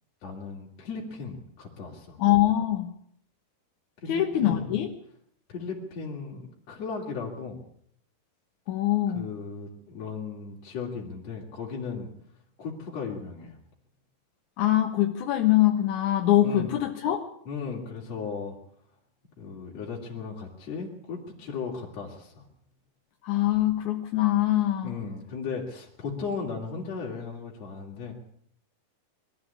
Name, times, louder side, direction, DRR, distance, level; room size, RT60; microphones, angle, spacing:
voice 1, 0.2-2.2 4.0-4.7 5.5-7.6 9.1-12.1 12.6-13.6 16.4-16.8 17.5-18.6 19.4-22.5 24.8-28.1, left 5 dB, 40° left, -3 dB, 3.6 m, -36 dB
voice 2, 2.2-2.9 4.1-4.9 8.7-9.2 14.6-17.3 23.2-25.0, left 13 dB, 65° left, 3 dB, 2.0 m, -23 dB
22.0 x 13.5 x 8.6 m, 0.67 s
omnidirectional pair, 5.0 m